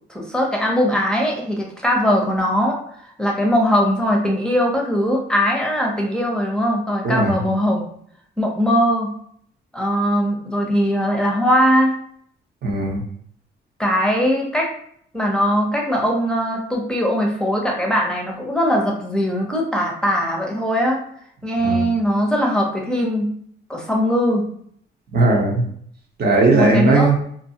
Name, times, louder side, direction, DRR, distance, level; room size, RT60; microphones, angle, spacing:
voice 1, 0.1-2.8 3.2-7.9 8.4-9.2 9.7-11.9 13.8-14.7 15.1-21.0 21.4-23.3 23.7-24.5 26.5-27.1, equal, 5° left, -1 dB, 0.7 m, -20 dB
voice 2, 7.0-7.4 12.6-13.0 21.6-21.8 25.1-25.6 26.2-27.2, right 2 dB, 50° right, -1 dB, 1.0 m, -17 dB
2.6 x 2.2 x 2.8 m, 0.65 s
cardioid pair, 90°, 20 cm